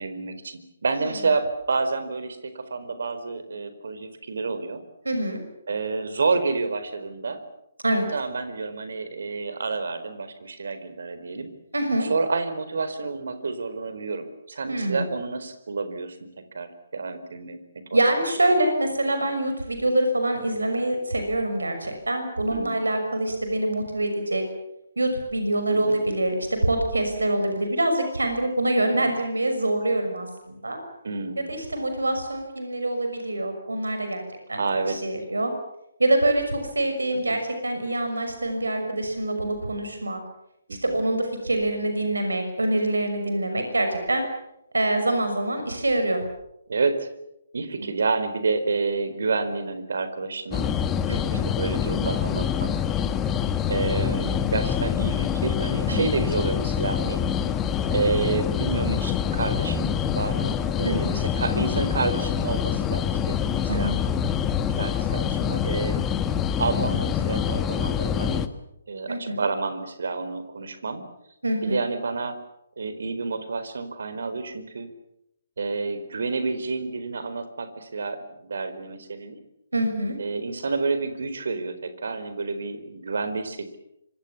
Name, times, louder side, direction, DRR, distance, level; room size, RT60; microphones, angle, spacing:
voice 1, 0.0-4.8 5.7-7.4 8.1-11.5 12.0-17.6 17.9-18.0 22.5-22.9 25.7-26.0 28.9-29.1 31.0-31.6 34.5-35.0 37.1-37.4 40.7-41.0 46.7-47.1 47.5-52.7 53.7-57.2 57.9-63.9 64.8-66.1 66.6-68.5 68.9-71.0 71.6-72.4 72.8-74.9 75.6-79.4 80.2-83.8, right 4 dB, 65° right, 11 dB, 4.4 m, -29 dB
voice 2, 5.0-5.4 7.8-8.1 11.7-12.1 14.7-15.0 17.9-24.4 25.0-30.8 31.5-34.2 34.5-34.6 35.0-35.5 36.0-40.2 40.8-44.2 44.7-46.2 47.8-47.9 51.1-51.5 55.9-56.1 60.8-61.2 63.7-64.0 69.1-69.4 71.4-71.8 79.7-80.2, right 1 dB, 80° right, 6 dB, 6.1 m, -25 dB
sound 1, 50.5-68.5, left 8 dB, 15° left, 1.6 m, -25 dB
27.0 x 25.0 x 7.3 m, 0.82 s
figure-of-eight pair, 135°, 0 cm